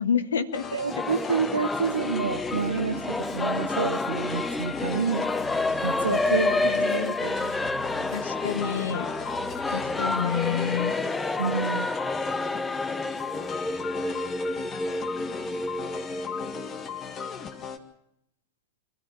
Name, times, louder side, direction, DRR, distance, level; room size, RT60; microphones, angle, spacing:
voice 1, 0.0-0.6 6.1-7.1 8.1-9.1 9.7-11.0, left 7 dB, 65° left, 1.5 m, -29 dB
sound 1, 0.5-17.8, left 7 dB, 25° left, 1.9 m, -37 dB
voice 2, 0.7-5.3 5.8-7.5 11.4-11.9, right 6 dB, 70° right, 1.2 m, -29 dB
Singing / Musical instrument, 0.9-17.2, left 2 dB, 10° left, 0.8 m, -29 dB
sound 2, 1.7-11.8, right 1 dB, 90° left, 6.8 m, -47 dB
26.0 x 13.5 x 8.8 m
figure-of-eight pair, 90°, 0 cm